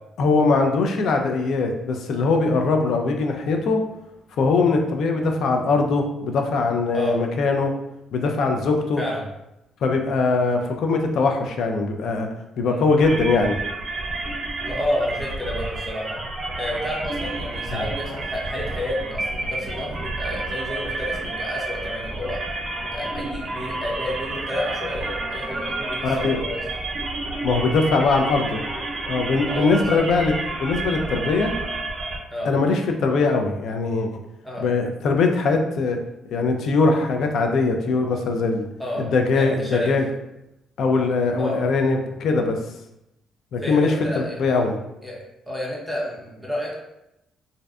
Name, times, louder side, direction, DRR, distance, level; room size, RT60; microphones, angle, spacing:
voice 1, 0.2-3.8 4.4-7.7 8.1-9.0 9.8-12.3 12.6-13.6 17.7-17.8 26.0-26.4 27.4-28.6 29.1-30.3 30.6-31.5 32.4-34.2 34.6-36.0 36.3-38.7 38.9-40.1 40.8-42.6 43.5-44.8, left 3 dB, 70° left, 4 dB, 0.3 m, -21 dB
sound 1, 13.0-32.2, right 2 dB, 50° right, 0.6 m, -30 dB
voice 2, 14.6-16.2 16.6-22.4 22.8-26.6 29.5-30.0 32.3-32.5 34.4-34.6 38.8-40.0 41.4-41.7 43.6-44.6 45.0-46.8, left 1 dB, 5° left, -4 dB, 0.7 m, -30 dB
2.5 x 2.1 x 2.3 m, 0.88 s
cardioid pair, 90°, 0 cm